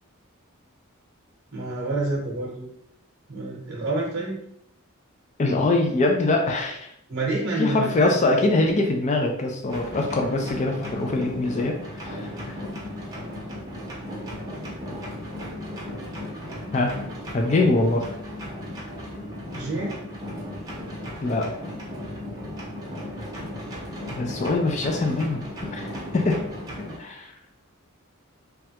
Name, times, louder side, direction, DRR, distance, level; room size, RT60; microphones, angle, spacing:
voice 1, 1.5-2.7 3.3-4.4 7.1-8.2 19.5-20.0, right 2 dB, 55° right, -4 dB, 0.8 m, -28 dB
voice 2, 5.4-6.9 7.6-12.5 16.7-16.9 17.3-18.1 21.2-21.5 24.1-25.4 25.7-25.8 26.1-26.5 27.0-27.3, left 2 dB, 35° left, 2 dB, 0.4 m, -23 dB
sound 1, 9.7-27.0, left 1 dB, 20° right, 0.7 m, -36 dB
3.2 x 2.3 x 2.8 m, 0.70 s
head